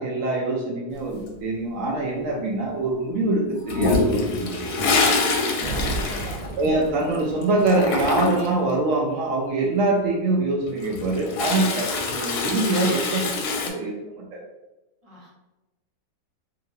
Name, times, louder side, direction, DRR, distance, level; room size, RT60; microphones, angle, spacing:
voice 1, 0.0-4.8 6.6-14.4, right 2 dB, 85° right, -2 dB, 0.7 m, -24 dB
Toilet flush, 3.7-7.2 7.4-8.6 10.6-13.7, left 3 dB, 70° left, 1.0 m, -25 dB
voice 2, 5.4-6.4 15.0-15.4, equal, 25° right, -6 dB, 1.0 m, -42 dB
Thunder, 5.6-7.8, right 2 dB, 60° right, 1.1 m, -32 dB
2.8 x 2.7 x 2.6 m, 0.99 s
omnidirectional pair, 1.9 m